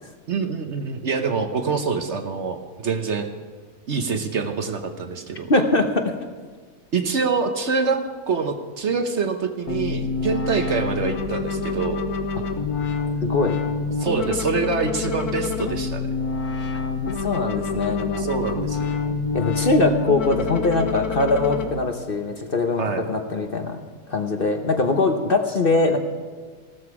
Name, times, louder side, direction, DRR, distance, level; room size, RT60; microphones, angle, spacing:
voice 1, 0.3-3.3 3.9-5.5 6.9-8.0 8.3-12.0 14.0-16.0 18.2-18.9 22.8-23.0, right 5 dB, 55° right, 6 dB, 1.1 m, -25 dB
voice 2, 5.5-6.1 13.2-13.6 17.2-18.3 19.3-23.8 24.1-26.0, left 3 dB, 40° left, 5 dB, 1.0 m, -22 dB
sound 1, 9.7-21.7, left 4 dB, 80° left, 1.6 m, -27 dB
16.0 x 13.0 x 4.8 m, 1.5 s
omnidirectional pair, 1.6 m